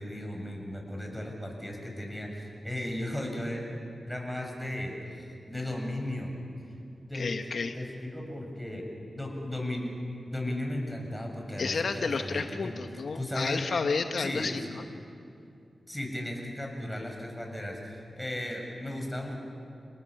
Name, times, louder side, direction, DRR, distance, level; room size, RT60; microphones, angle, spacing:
voice 1, 0.0-3.6 4.1-6.4 7.1-9.9 10.3-12.8 13.1-13.6 14.2-14.5 15.9-19.4, left 1 dB, 5° left, 1 dB, 6.9 m, -36 dB
voice 2, 7.1-7.7 11.6-14.8, left 4 dB, 70° left, 7 dB, 1.0 m, -31 dB
28.5 x 19.5 x 7.6 m, 2.5 s
cardioid pair, 55°, 0 cm